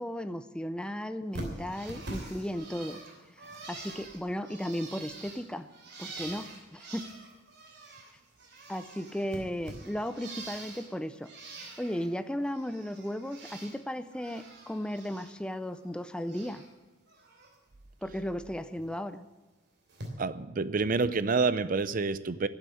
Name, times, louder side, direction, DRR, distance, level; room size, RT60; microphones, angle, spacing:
voice 1, 0.0-3.0 3.4-5.7 6.0-7.1 8.7-11.3 11.8-16.6 18.0-19.3, equal, 5° left, 11 dB, 0.5 m, -35 dB
Bird, 1.3-8.1 8.4-10.9 11.2-12.1 12.4-13.8 14.1-15.3 15.6-16.7 17.1-17.5 18.8-18.9 19.9-20.1, right 2 dB, 60° right, 3.1 m, -45 dB
voice 2, 20.2-22.5, right 4 dB, 45° right, 16 dB, 0.5 m, -28 dB
12.0 x 8.3 x 10.0 m, 1.2 s
head